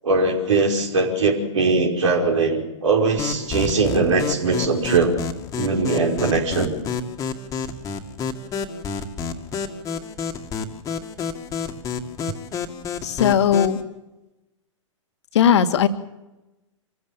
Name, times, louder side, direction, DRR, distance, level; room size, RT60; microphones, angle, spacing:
voice 1, 0.0-5.2 5.6-6.8, right 3 dB, 70° right, 2 dB, 5.2 m, -20 dB
sound 1, 3.2-13.8, left 5 dB, 20° left, 2.1 m, -29 dB
voice 2, 13.0-13.8 15.3-15.9, left 8 dB, 60° left, 8 dB, 1.8 m, -17 dB
26.0 x 15.5 x 7.2 m, 0.98 s
hypercardioid pair, 115°, 16 cm